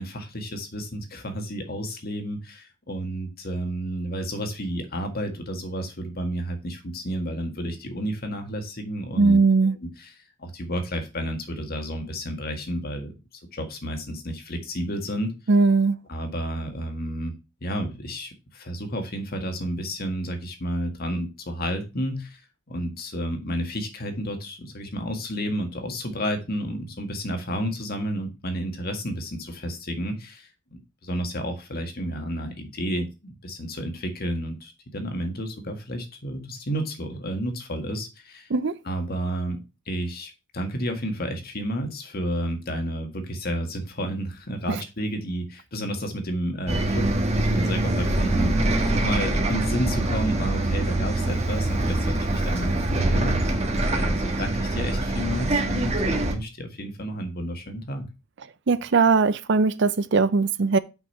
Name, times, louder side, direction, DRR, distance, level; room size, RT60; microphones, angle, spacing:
voice 1, 0.0-9.4 9.7-10.1 10.4-13.1 13.5-15.3 16.1-17.3 17.6-22.4 22.7-38.5 38.8-39.6 39.9-48.6 48.9-58.1, equal, 50° left, 1.7 m, -31 dB
voice 2, 9.2-9.8 15.5-16.0 38.5-38.8 58.7-60.8, right 4 dB, 60° right, 0.6 m, -19 dB
Bus, 46.7-56.3, right 1 dB, 35° right, 1.3 m, -24 dB
6.1 x 5.4 x 5.4 m
head